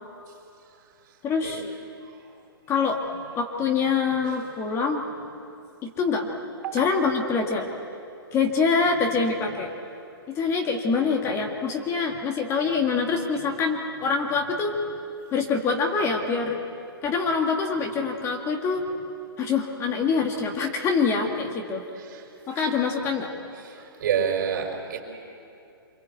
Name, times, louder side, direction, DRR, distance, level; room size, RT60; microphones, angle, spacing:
voice 1, 1.2-1.6 2.7-3.0 3.4-5.0 5.8-6.3 6.7-7.7 8.3-9.7 10.3-14.8 15.3-16.6 17.0-18.8 19.4-21.8 22.5-23.3, left 5 dB, 20° left, 2 dB, 1.9 m, -25 dB
voice 2, 24.0-25.0, right 8 dB, 50° right, 2 dB, 5.1 m, -27 dB
26.0 x 23.5 x 8.4 m, 2.7 s
hypercardioid pair, 140°, 13 cm